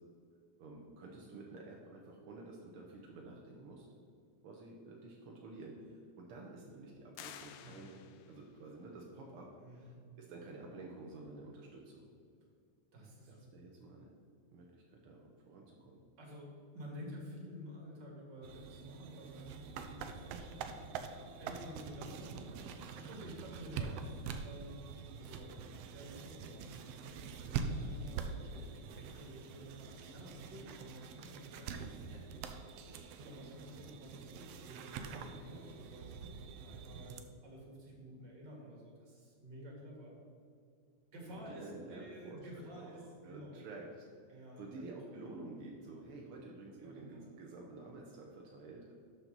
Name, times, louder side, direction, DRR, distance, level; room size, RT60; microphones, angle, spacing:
voice 1, 0.6-3.9 4.4-8.0 8.3-9.9 10.2-12.1 13.3-14.1 14.5-16.0 41.3-48.9, right 2 dB, 70° right, -1 dB, 1.3 m, -51 dB
sound 1, 7.1-8.5, left 9 dB, 80° left, 1.6 m, -52 dB
voice 2, 9.6-10.0 12.9-13.7 16.2-21.1 21.4-37.2 37.4-40.1 41.1-43.6 44.3-44.9 46.8-47.2, equal, 40° right, -2 dB, 2.4 m, -51 dB
sound 2, 18.4-37.2, right 5 dB, 85° right, 1.4 m, -45 dB
12.5 x 6.1 x 4.0 m, 2.3 s
omnidirectional pair, 3.5 m